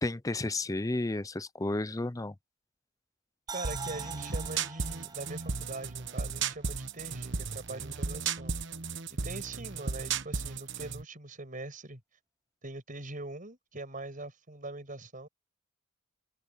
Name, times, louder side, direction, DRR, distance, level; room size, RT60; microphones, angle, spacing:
voice 1, 0.0-2.4, left 2 dB, 15° left, 0.6 m, -32 dB
sound 1, 3.5-6.7 7.0-7.1, right 4 dB, 20° right, 7.9 m, -45 dB
voice 2, 3.5-8.5 9.2-12.0 12.6-15.3, right 2 dB, 40° right, 5.7 m, -42 dB
sound 2, 3.6-11.0, right 5 dB, 60° right, 1.2 m, -35 dB
head